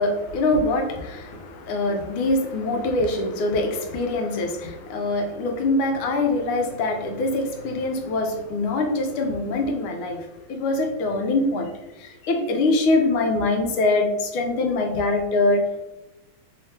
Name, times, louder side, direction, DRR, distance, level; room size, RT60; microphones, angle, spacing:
voice 1, 0.0-11.7 12.0-15.9, left 2 dB, 85° left, 3 dB, 1.6 m, -24 dB
3.7 x 2.8 x 3.2 m, 0.96 s
omnidirectional pair, 2.2 m